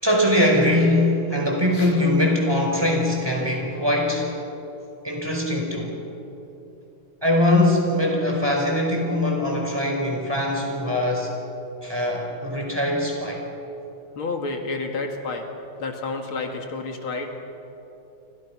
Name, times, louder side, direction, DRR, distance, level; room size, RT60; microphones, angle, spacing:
voice 1, 0.0-4.3 5.0-6.0 7.2-11.3 11.8-13.4, left 1 dB, 10° right, 0 dB, 4.9 m, -22 dB
voice 2, 14.2-15.5 15.8-17.4, left 3 dB, 75° left, 3 dB, 2.8 m, -30 dB
29.5 x 25.0 x 6.0 m, 2.9 s
omnidirectional pair, 2.3 m